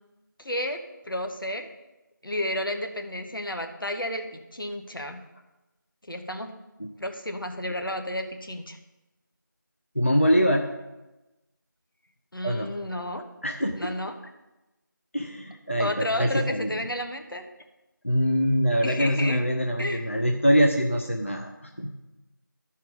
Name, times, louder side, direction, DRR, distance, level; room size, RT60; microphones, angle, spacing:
voice 1, 0.4-0.8 1.0-1.7 2.2-5.2 6.1-6.5 7.0-8.8 12.3-13.2 13.8-14.1 15.8-17.4 18.8-19.4 19.8-20.1, left 1 dB, 85° left, 5 dB, 1.2 m, -31 dB
voice 2, 9.9-10.7 12.4-12.7 13.4-13.9 15.1-16.7 18.0-21.9, equal, 40° left, 2 dB, 0.6 m, -24 dB
13.0 x 4.6 x 5.1 m, 1.0 s
figure-of-eight pair, 180°, 11 cm